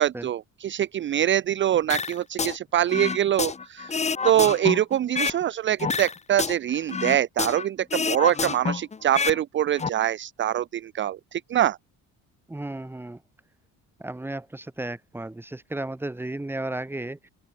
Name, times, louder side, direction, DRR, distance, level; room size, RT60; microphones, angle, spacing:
voice 1, 0.0-4.0 4.2-11.8, right 11 dB, 35° right, 0.7 m, -24 dB
sound 1, 1.9-2.6 2.9-5.4 5.8-7.7 7.9-9.4 9.7-9.9, left 5 dB, 20° left, 2.9 m, -28 dB
voice 2, 12.5-13.2 14.0-17.3, right 2 dB, 5° right, 3.4 m, -34 dB
open air
cardioid pair, 165°, 33 cm